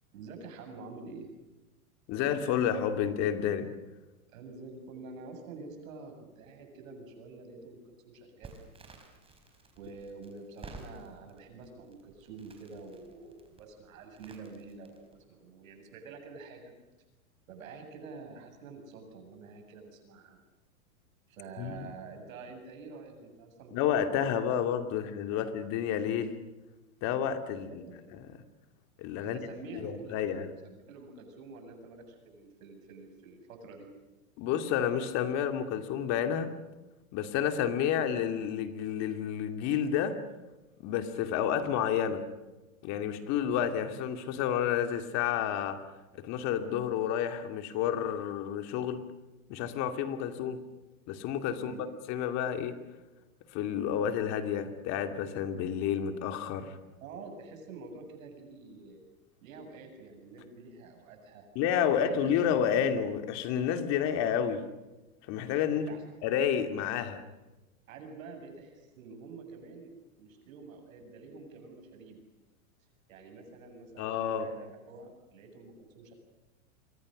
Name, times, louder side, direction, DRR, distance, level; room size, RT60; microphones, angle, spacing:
voice 1, 0.1-1.3 4.3-8.6 9.8-16.8 17.5-20.4 21.3-24.1 24.5-24.7 25.3-25.4 27.7-28.0 29.2-30.4 30.9-33.9 51.5-51.9 57.0-59.0 59.4-61.5 61.9-62.2 65.7-66.0 67.9-69.9 70.2-72.2 73.1-76.1, right 4 dB, 70° right, 4 dB, 7.7 m, -48 dB
voice 2, 2.1-3.7 21.6-21.9 23.7-26.4 27.0-27.8 28.2-28.4 29.0-29.4 29.7-30.5 34.4-36.5 37.1-40.1 40.8-42.2 42.8-45.8 46.1-49.0 49.5-50.6 51.1-52.7 53.5-56.8 61.5-64.7 65.3-65.9 66.2-67.2 74.0-74.5, left 9 dB, 40° left, 8 dB, 2.7 m, -30 dB
Crackle, 8.4-15.2, right 3 dB, 15° right, 4.3 m, -53 dB
28.0 x 24.0 x 6.6 m, 1.1 s
supercardioid pair, 140°, 42 cm